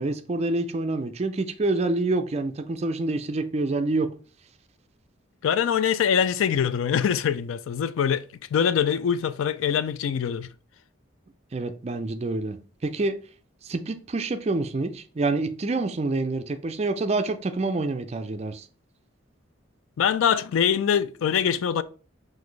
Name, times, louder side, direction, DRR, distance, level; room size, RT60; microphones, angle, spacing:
voice 1, 0.0-4.1 11.5-13.2 13.6-18.7, right 2 dB, 30° right, 0.4 m, -27 dB
voice 2, 5.4-8.2 8.5-10.5 20.0-21.8, left 8 dB, 85° left, 0.3 m, -23 dB
6.0 x 2.6 x 3.1 m
head